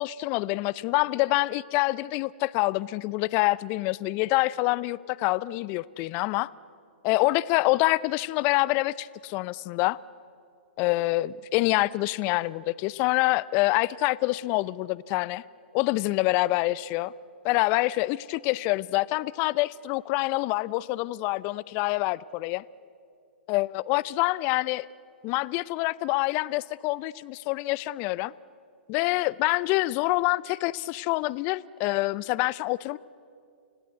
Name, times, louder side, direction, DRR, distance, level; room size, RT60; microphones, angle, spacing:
voice 1, 0.0-6.5 7.0-10.0 10.8-15.4 15.7-17.1 17.4-22.6 23.5-24.9 25.2-28.3 28.9-33.0, left 20 dB, 35° left, 20 dB, 0.5 m, -26 dB
29.5 x 16.5 x 8.1 m, 2.5 s
hypercardioid pair, 120°, 6 cm